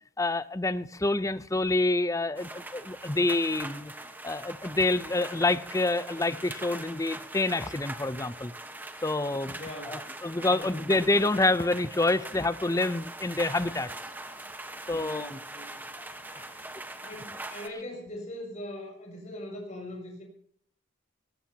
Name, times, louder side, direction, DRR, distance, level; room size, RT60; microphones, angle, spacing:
voice 1, 0.2-3.9 4.2-8.5 9.0-9.5 9.9-13.9 14.9-15.4 16.4-16.5, left 2 dB, 15° left, 15 dB, 0.6 m, -27 dB
sound 1, 2.4-17.7, right 2 dB, 10° right, 1.2 m, -42 dB
voice 2, 9.4-10.0 10.5-10.8 14.9-15.8 16.4-20.2, left 1 dB, 35° left, 0 dB, 6.7 m, -42 dB
20.5 x 18.5 x 2.9 m, 0.63 s
head